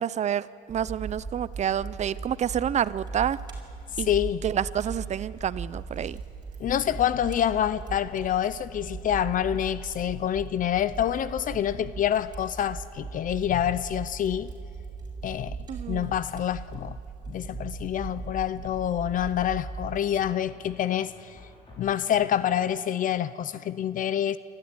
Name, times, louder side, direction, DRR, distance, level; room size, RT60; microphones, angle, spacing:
voice 1, 0.0-3.4 4.0-4.1 4.4-6.2 15.7-16.1, right 9 dB, 45° right, 0.6 m, -28 dB
Fire, 0.7-20.0, right 4 dB, 25° right, 5.3 m, -39 dB
voice 2, 3.9-4.4 6.6-14.5 15.2-15.6 15.9-17.0 17.3-21.4 21.8-24.4, left 10 dB, 50° left, 0.6 m, -27 dB
sound 1, 17.6-18.0 20.2-22.8, left 1 dB, 35° left, 6.0 m, -51 dB
27.0 x 13.5 x 9.7 m
cardioid pair, 110°, 17 cm